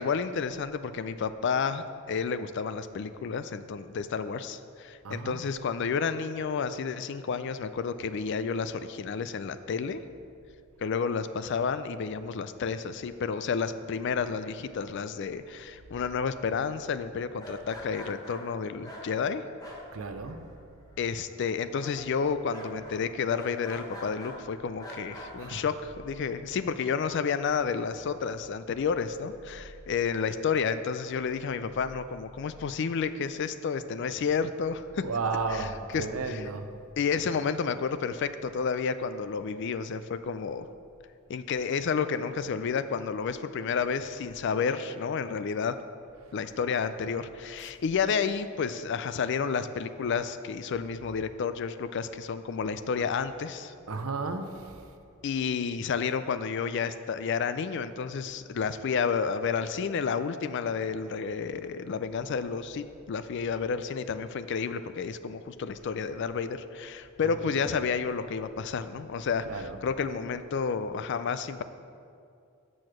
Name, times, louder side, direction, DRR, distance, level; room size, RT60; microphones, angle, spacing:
voice 1, 0.0-10.0 10.8-19.4 21.0-35.0 35.5-35.7 35.9-36.5 37.0-40.7 41.3-45.8 46.3-53.7 55.2-71.6, left 6 dB, 55° left, 0.4 m, -31 dB
voice 2, 5.0-5.6 19.9-20.6 25.4-25.6 35.0-36.7 53.9-54.8 67.2-67.7 69.5-69.9, right 3 dB, 85° right, 0.6 m, -34 dB
sound 1, 17.3-20.6 20.8-21.4 21.8-24.4 24.8-25.6, equal, 20° left, 1.2 m, -45 dB
6.7 x 6.2 x 6.1 m
head